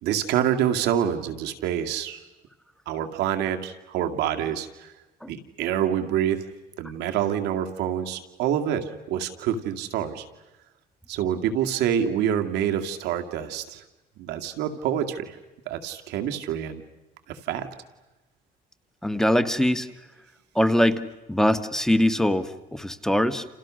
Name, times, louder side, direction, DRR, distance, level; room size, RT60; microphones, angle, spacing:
voice 1, 0.0-2.3 2.9-4.9 5.3-6.4 6.8-10.2 11.1-13.8 14.2-15.4 15.7-16.8 17.3-17.7, right 9 dB, 85° right, 6 dB, 2.4 m, -27 dB
voice 2, 19.0-19.9 20.5-23.4, left 1 dB, 5° left, 9 dB, 1.5 m, -22 dB
29.5 x 29.0 x 6.5 m, 1.0 s
cardioid pair, 110°, 17 cm